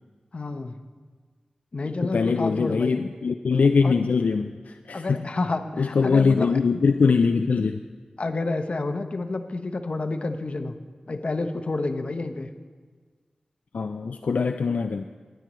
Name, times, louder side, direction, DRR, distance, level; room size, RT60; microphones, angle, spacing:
voice 1, 0.3-0.8 1.7-3.0 3.8-3.9 4.9-6.5 8.2-10.8 11.1-12.5, left 3 dB, 50° left, 7 dB, 0.8 m, -29 dB
voice 2, 2.0-5.2 5.8-7.8 13.7-15.0, left 5 dB, 75° left, 7 dB, 0.3 m, -22 dB
19.0 x 9.1 x 3.1 m, 1.5 s
wide cardioid pair, 70°, 3 cm